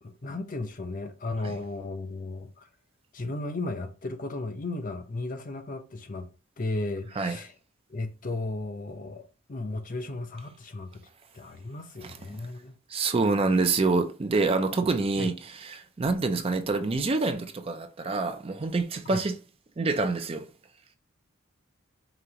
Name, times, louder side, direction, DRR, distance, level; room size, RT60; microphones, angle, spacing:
voice 1, 0.0-2.7 3.1-6.3 6.6-7.5 7.9-11.0 11.3-12.7 15.2-15.3 19.1-19.2, left 2 dB, 40° left, 0.6 m, -35 dB
voice 2, 12.9-19.4 19.8-20.5, right 3 dB, 30° right, 0.4 m, -26 dB
5.0 x 2.9 x 2.9 m
head